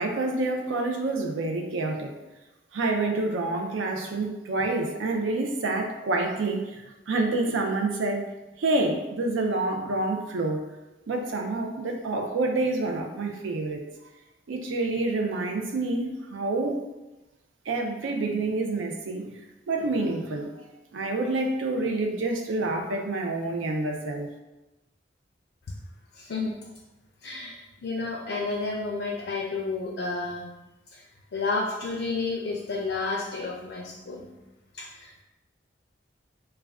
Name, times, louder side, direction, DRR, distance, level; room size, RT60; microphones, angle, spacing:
voice 1, 0.0-2.1 2.7-8.3 8.6-10.7 11.1-13.8 14.5-16.9 17.7-19.3 19.7-20.5 20.9-24.3, right 2 dB, 90° right, 3 dB, 0.4 m, -28 dB
voice 2, 26.1-26.5 27.2-30.5 30.9-31.0 31.3-34.3 34.7-35.2, left 3 dB, 70° left, -2 dB, 0.4 m, -31 dB
2.3 x 2.2 x 3.4 m, 1.0 s
head